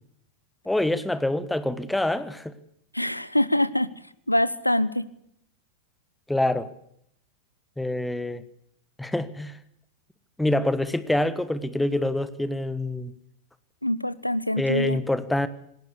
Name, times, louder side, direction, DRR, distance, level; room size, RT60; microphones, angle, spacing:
voice 1, 0.6-2.5 6.3-6.7 7.8-8.4 9.0-9.6 10.4-13.1 14.6-15.5, left 1 dB, 5° left, 14 dB, 1.4 m, -26 dB
voice 2, 2.9-3.9 4.3-5.0 13.8-15.0, left 1 dB, 85° left, 18 dB, 0.9 m, -24 dB
20.0 x 17.5 x 8.3 m, 0.70 s
figure-of-eight pair, 90°, 0 cm